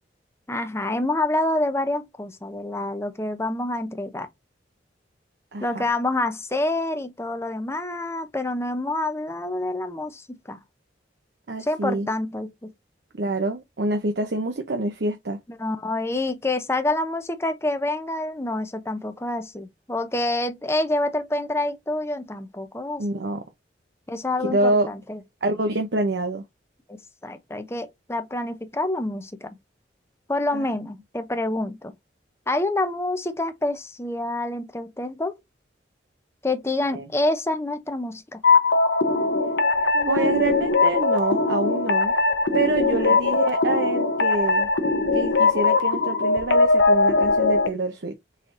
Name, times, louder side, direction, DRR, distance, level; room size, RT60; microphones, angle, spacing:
voice 1, 0.5-4.3 5.6-10.6 11.6-12.7 15.5-23.2 24.1-25.2 26.9-27.0 27.2-29.5 30.3-31.9 32.5-35.4 36.4-38.4 40.1-40.3 42.8-43.2, left 2 dB, 15° left, 0.6 m, -27 dB
voice 2, 5.5-5.8 11.5-12.1 13.2-15.4 23.0-23.4 24.4-24.9 25.4-26.4 30.5-30.7 36.9-37.1 39.9-42.1 42.5-44.7 45.1-48.1, right 2 dB, 65° right, 0.7 m, -26 dB
sound 1, 38.4-47.7, left 3 dB, 80° left, 0.7 m, -20 dB
4.5 x 4.1 x 2.5 m
head